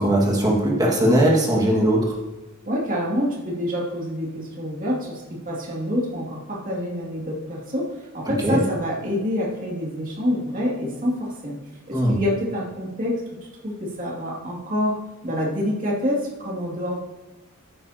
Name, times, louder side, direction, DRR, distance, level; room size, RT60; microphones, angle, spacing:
voice 1, 0.0-2.2 8.3-8.6 11.9-12.2, right 1 dB, 15° right, -3 dB, 1.9 m, -19 dB
voice 2, 2.7-11.6 11.9-13.2 13.6-15.0 15.2-17.0, equal, 35° right, -4 dB, 2.5 m, -27 dB
14.0 x 9.6 x 2.9 m, 1.2 s
head